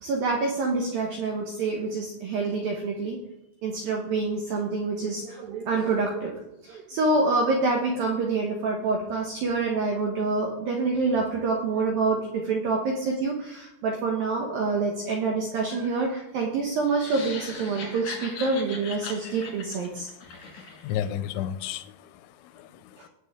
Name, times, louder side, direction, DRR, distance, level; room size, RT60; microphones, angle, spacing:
voice 1, 0.0-3.2 3.6-20.1 23.0-23.1, right 3 dB, 80° right, 0 dB, 2.0 m, -27 dB
sound 1, 16.8-21.1, left 4 dB, 55° left, 1.9 m, -39 dB
voice 2, 20.6-22.1 22.5-23.1, left 10 dB, 80° left, 12 dB, 2.8 m, -33 dB
19.0 x 6.9 x 3.6 m, 0.90 s
omnidirectional pair, 5.9 m